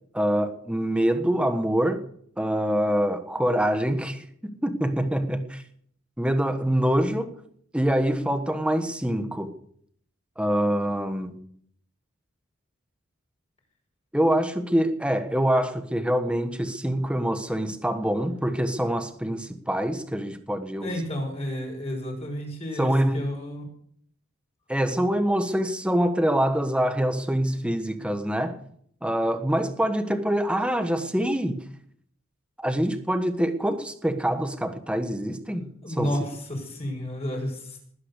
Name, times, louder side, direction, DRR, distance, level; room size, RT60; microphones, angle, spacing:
voice 1, 0.1-2.0 2.4-5.6 6.2-7.3 7.7-9.5 10.4-11.4 14.1-21.0 22.8-23.2 24.7-28.6 29.0-31.6 32.6-35.7 36.0-36.1, equal, 5° right, 1.4 m, -25 dB
voice 2, 20.8-22.9 23.1-23.6 35.8-37.8, equal, 30° left, 5.8 m, -31 dB
20.0 x 9.7 x 6.7 m
head